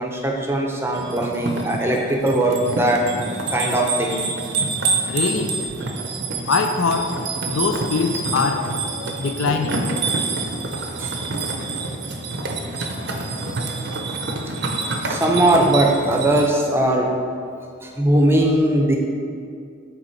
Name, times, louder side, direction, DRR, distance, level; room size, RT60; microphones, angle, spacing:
voice 1, 0.0-3.1 3.5-4.3 11.0-11.1 12.8-12.9 14.8-17.1 17.8-19.0, right 1 dB, 10° right, 1 dB, 0.6 m, -20 dB
sound 1, 0.9-16.5, right 3 dB, 55° right, 0.6 m, -27 dB
voice 2, 5.1-5.6 6.5-7.2 7.5-8.7 9.2-9.9, left 4 dB, 80° left, 6 dB, 0.5 m, -22 dB
7.8 x 3.9 x 4.4 m, 2.3 s
head